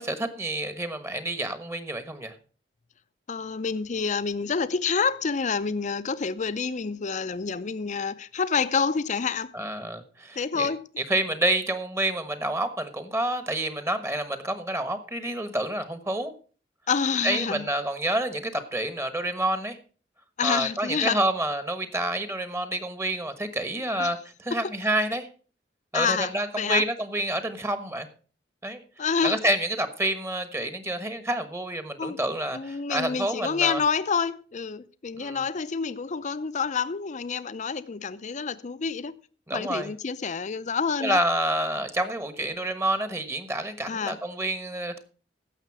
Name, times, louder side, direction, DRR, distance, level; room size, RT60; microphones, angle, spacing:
voice 1, 0.0-2.3 9.5-10.7 11.0-16.3 17.2-19.8 20.4-25.3 25.9-28.1 28.6-28.8 29.2-33.8 35.1-35.4 39.5-39.9 41.0-45.0, right 1 dB, 15° right, 1.2 m, -28 dB
voice 2, 3.3-9.5 10.4-10.9 16.9-17.7 20.4-21.2 24.0-24.1 24.5-24.7 25.9-26.8 29.0-29.4 32.0-32.2 32.5-39.1 39.5-41.2 43.9-44.2, left 5 dB, 40° left, 0.6 m, -28 dB
16.0 x 6.7 x 4.7 m
head